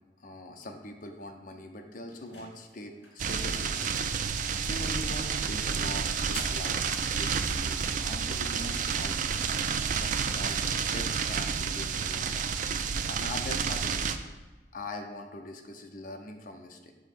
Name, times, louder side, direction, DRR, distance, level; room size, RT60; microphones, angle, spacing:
voice 1, 0.2-4.4 4.7-9.4 10.0-14.0 14.2-14.3 14.7-16.9, left 1 dB, 50° left, 4 dB, 0.7 m, -42 dB
sound 1, 2.1-3.3 4.6-5.0 5.3-6.7, left 1 dB, 80° left, 2.1 m, -46 dB
sound 2, 3.2-14.2, right 6 dB, 45° right, 0.3 m, -30 dB
6.9 x 3.0 x 6.0 m, 1.2 s
head